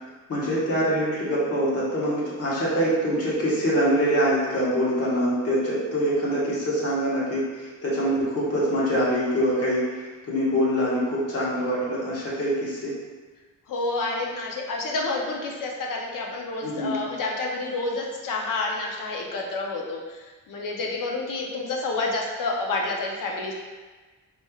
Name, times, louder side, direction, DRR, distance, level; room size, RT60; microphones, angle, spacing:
voice 1, 0.3-13.0 16.6-17.0, equal, 50° left, -7 dB, 1.4 m, -24 dB
voice 2, 13.7-23.5, left 3 dB, 80° left, 0 dB, 0.7 m, -29 dB
4.2 x 3.2 x 2.3 m, 1.3 s
cardioid pair, 110°, 32 cm